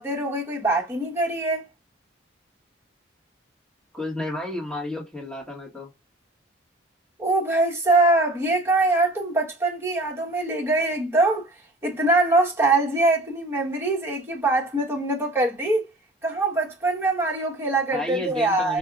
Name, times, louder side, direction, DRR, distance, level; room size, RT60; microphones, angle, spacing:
voice 1, 0.0-1.6 7.2-11.5 11.8-15.9 16.2-18.8, right 2 dB, 15° right, 1.1 m, -23 dB
voice 2, 3.9-5.9 17.9-18.8, left 2 dB, 5° left, 1.4 m, -32 dB
4.9 x 2.6 x 2.4 m
head